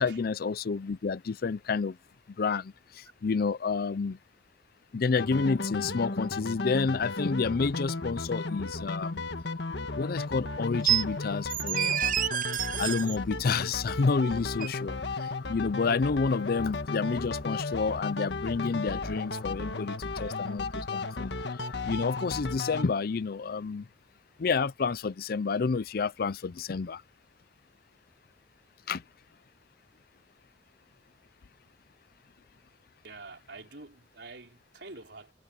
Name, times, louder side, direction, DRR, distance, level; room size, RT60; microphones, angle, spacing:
voice 1, 0.0-2.0 2.4-4.2 4.9-9.2 9.9-12.2 12.8-21.4 21.8-23.9 24.4-27.0 28.9-29.0, left 4 dB, 55° left, 0.5 m, -29 dB
sound 1, 5.2-22.9, left 3 dB, 75° left, 1.4 m, -35 dB
sound 2, 10.8-11.0 11.5-13.2 14.6-14.7, right 11 dB, 50° right, 0.8 m, -28 dB
voice 2, 33.0-35.3, right 3 dB, 75° right, 5.1 m, -47 dB
head